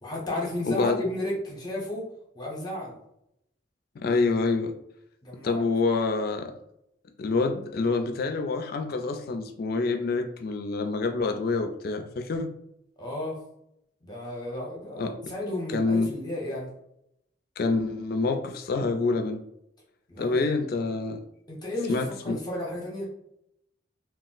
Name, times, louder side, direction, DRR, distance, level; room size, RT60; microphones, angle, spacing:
voice 1, 0.0-2.1 2.3-2.9 5.2-5.6 13.0-13.4 14.0-16.7 20.1-20.4 21.5-23.1, left 1 dB, 20° left, -3 dB, 0.7 m, -33 dB
voice 2, 0.7-1.0 4.0-4.7 5.4-6.5 7.2-12.5 15.0-15.3 15.7-16.1 17.6-19.4 20.2-21.2 21.9-22.4, left 3 dB, 55° left, 6 dB, 0.3 m, -27 dB
2.3 x 2.0 x 3.8 m, 0.79 s
head